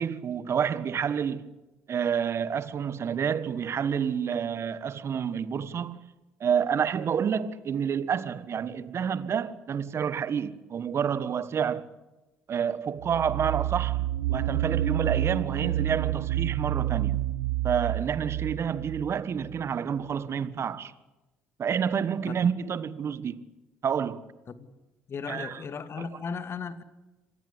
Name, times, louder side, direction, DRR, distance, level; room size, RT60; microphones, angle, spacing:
voice 1, 0.0-1.5 1.9-6.1 6.4-11.9 12.5-17.2 17.6-20.9 21.6-23.4 23.8-24.2 25.3-25.6 26.0-26.1, right 7 dB, 45° right, 1.5 m, -29 dB
sound 1, 13.0-19.6, right 13 dB, 80° right, 0.7 m, -29 dB
voice 2, 25.1-26.8, left 5 dB, 45° left, 2.3 m, -36 dB
26.0 x 18.5 x 8.2 m
hypercardioid pair, 55°, 6 cm